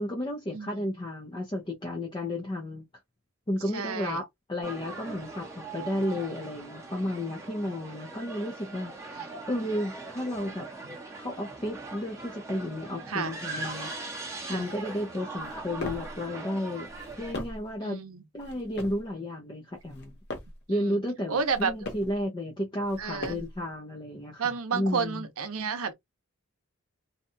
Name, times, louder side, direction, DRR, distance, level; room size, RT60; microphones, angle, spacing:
voice 1, 0.0-2.8 3.5-10.7 11.2-13.9 14.2-16.9 17.2-18.0 18.3-20.2 20.7-24.4 24.7-25.3, left 1 dB, 20° left, 0.4 m, -33 dB
voice 2, 3.7-4.2 6.2-6.4 9.1-9.3 13.1-13.3 14.5-14.7 17.8-18.2 20.7-21.0 21.3-21.7 23.0-23.4 24.4-25.9, right 5 dB, 75° right, 0.7 m, -31 dB
sound 1, 4.6-17.3, right 3 dB, 15° right, 0.7 m, -41 dB
sound 2, 15.4-16.2 16.9-17.7 18.4-19.1 19.8-20.6 21.4-22.2 22.8-23.6, left 2 dB, 50° left, 0.8 m, -40 dB
2.7 x 2.2 x 2.6 m
head